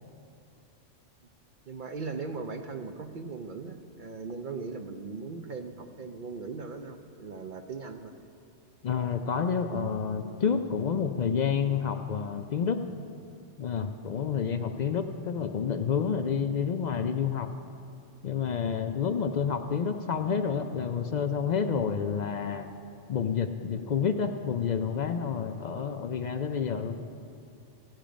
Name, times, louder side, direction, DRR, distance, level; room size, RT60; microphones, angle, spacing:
voice 1, 1.7-8.1, right 4 dB, 55° right, 6 dB, 0.6 m, -39 dB
voice 2, 8.8-12.8 13.6-17.5 18.2-22.7 23.1-27.0, left 6 dB, 60° left, 7 dB, 0.4 m, -29 dB
16.0 x 8.9 x 5.1 m, 2.5 s
omnidirectional pair, 1.2 m